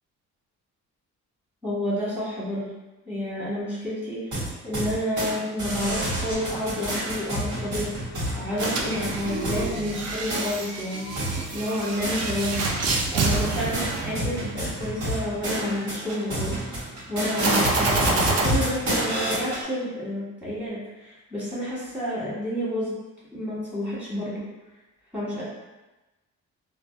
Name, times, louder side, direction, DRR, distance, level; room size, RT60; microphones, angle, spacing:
voice 1, 1.6-2.7 3.0-4.3 4.6-7.9 8.3-11.1 11.5-12.7 13.1-16.6 17.1-22.9 23.3-24.4 25.1-25.4, left 1 dB, 5° right, -9 dB, 1.2 m, -29 dB
sound 1, 4.3-5.3 5.6-9.7 10.3-10.5 11.2-12.6 12.9-19.6, right 1 dB, 75° right, 1.2 m, -29 dB
sound 2, 8.5-14.7 17.4-18.4, right 3 dB, 55° right, 0.4 m, -28 dB
2.6 x 2.1 x 2.3 m, 1.1 s
cardioid pair, 90°, 30 cm